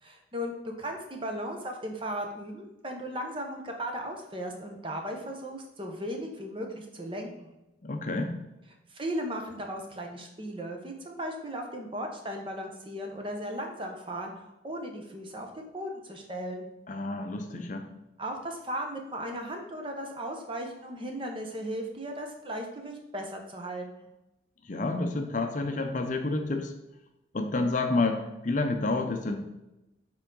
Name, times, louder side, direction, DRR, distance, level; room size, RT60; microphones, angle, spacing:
voice 1, 0.0-7.5 8.9-16.7 18.2-24.1, equal, 25° right, 3 dB, 0.8 m, -36 dB
voice 2, 7.8-8.3 16.9-17.8 24.6-26.7 27.3-29.4, left 2 dB, 40° left, 5 dB, 0.6 m, -29 dB
7.0 x 3.8 x 3.8 m, 0.95 s
head